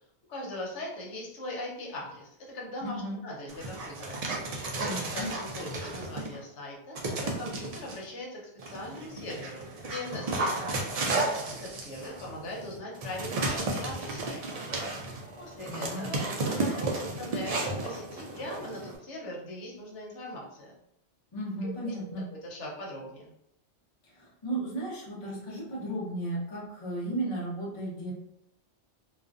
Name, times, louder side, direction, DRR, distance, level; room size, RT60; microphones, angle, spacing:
voice 1, 0.3-4.2 5.1-10.8 11.6-14.6 15.4-20.7 21.6-21.9 22.4-23.3, left 1 dB, 85° left, -3 dB, 1.0 m, -40 dB
voice 2, 2.8-3.2 4.8-5.3 15.7-16.1 21.3-22.3 24.1-28.1, right 1 dB, 35° left, -5 dB, 0.7 m, -35 dB
Dog, 3.5-6.4 6.9-8.0 8.6-19.0, right 2 dB, 70° right, 0.3 m, -33 dB
2.4 x 2.2 x 2.4 m, 0.79 s
omnidirectional pair, 1.2 m